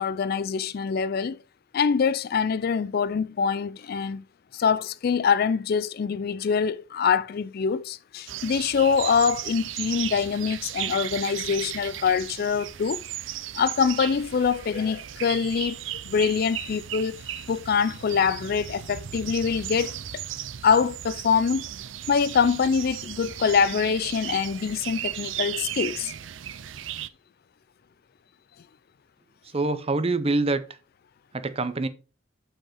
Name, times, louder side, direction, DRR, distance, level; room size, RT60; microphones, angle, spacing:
voice 1, 0.0-1.4 1.7-4.2 4.5-13.0 13.5-20.2 20.6-21.7 22.1-26.1, left 6 dB, 50° left, 0.4 m, -24 dB
sound 1, 8.3-27.1, right 11 dB, 75° right, 0.5 m, -36 dB
voice 2, 29.5-30.6 31.3-31.9, right 2 dB, 30° right, 0.6 m, -25 dB
7.8 x 4.6 x 4.3 m
head